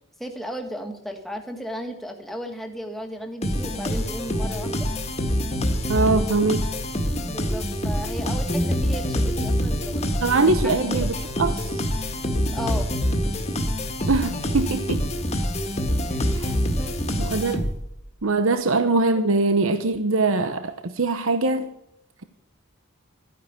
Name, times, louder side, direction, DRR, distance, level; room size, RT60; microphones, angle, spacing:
voice 1, 0.2-4.9 7.3-10.2 10.6-11.1 12.5-12.9 16.1-16.3 16.7-17.0 18.6-18.7, equal, ahead, 3 dB, 1.9 m, -35 dB
sound 1, 3.4-18.0, equal, 30° left, 1.9 m, -25 dB
voice 2, 5.9-6.7 10.2-11.6 14.1-15.0 16.4-16.5 17.2-17.7 18.2-21.7, right 3 dB, 75° right, 9 dB, 1.0 m, -22 dB
13.0 x 10.0 x 8.3 m, 0.80 s
head